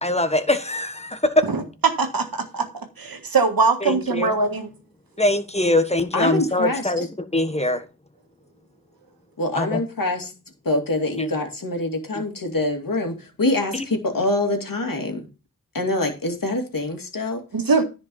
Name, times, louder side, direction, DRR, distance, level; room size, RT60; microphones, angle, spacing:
voice 1, 0.0-1.3 3.8-4.3 5.2-7.8 9.6-9.8 11.2-11.3 13.7-13.9, left 1 dB, 20° left, 1.4 m, -23 dB
voice 2, 1.4-4.7 17.5-17.8, right 4 dB, 75° right, 1.7 m, -22 dB
voice 3, 6.1-6.9 9.4-10.3 10.6-15.2 15.7-17.4, left 2 dB, 65° left, 2.5 m, -25 dB
10.5 x 5.2 x 5.6 m
wide cardioid pair, 50°, 36 cm